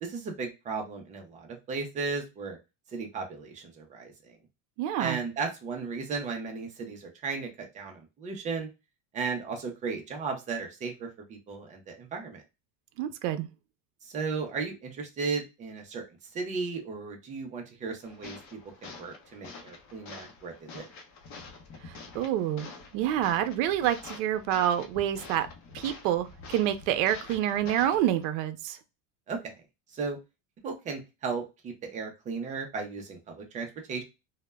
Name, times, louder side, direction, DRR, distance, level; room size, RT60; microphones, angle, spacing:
voice 1, 0.0-2.6 2.9-4.3 5.0-8.7 9.1-12.4 14.0-16.0 16.3-20.8 29.3-29.5 29.9-30.2 30.6-34.0, right 4 dB, 20° right, 0.3 m, -35 dB
voice 2, 4.8-5.2 13.0-13.5 21.9-25.5 25.7-28.8, right 11 dB, 75° right, 0.5 m, -28 dB
sound 1, 18.0-28.2, left 4 dB, 45° left, 0.6 m, -47 dB
2.1 x 2.1 x 3.2 m
cardioid pair, 155°, 40 cm